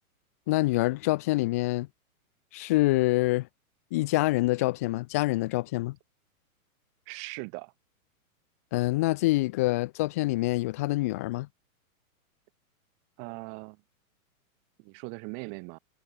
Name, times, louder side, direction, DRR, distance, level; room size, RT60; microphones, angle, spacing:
voice 1, 0.5-1.9 2.5-3.5 3.9-6.0 8.7-11.5, left 19 dB, 10° left, 0.5 m, -26 dB
voice 2, 7.1-7.7 13.2-13.8 14.8-15.8, right 40 dB or more, 30° right, 4.4 m, -40 dB
hypercardioid pair, 170°, 43 cm